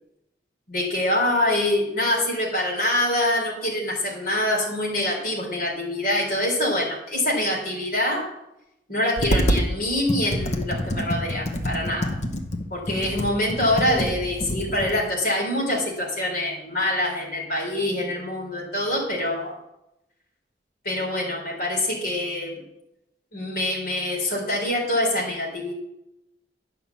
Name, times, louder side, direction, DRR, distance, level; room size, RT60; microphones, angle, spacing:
voice 1, 0.7-8.2 8.9-12.2 12.7-19.5 20.8-22.6 23.3-25.7, left 1 dB, 55° left, -4 dB, 3.7 m, -25 dB
Computer keyboard, 9.2-9.7 10.1-15.0, equal, 40° left, 0.9 m, -26 dB
10.0 x 5.8 x 7.2 m, 0.86 s
head